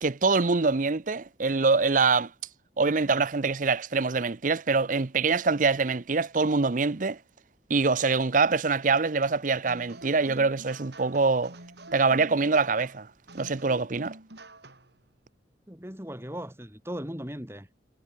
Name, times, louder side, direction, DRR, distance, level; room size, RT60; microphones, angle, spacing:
voice 1, 0.0-2.3 2.8-7.2 7.7-11.5 11.9-13.1 13.3-14.2, right 4 dB, 45° right, 0.7 m, -24 dB
sound 1, 9.6-15.0, right 1 dB, 65° right, 7.0 m, -47 dB
voice 2, 15.7-17.7, equal, 15° right, 7.0 m, -38 dB
head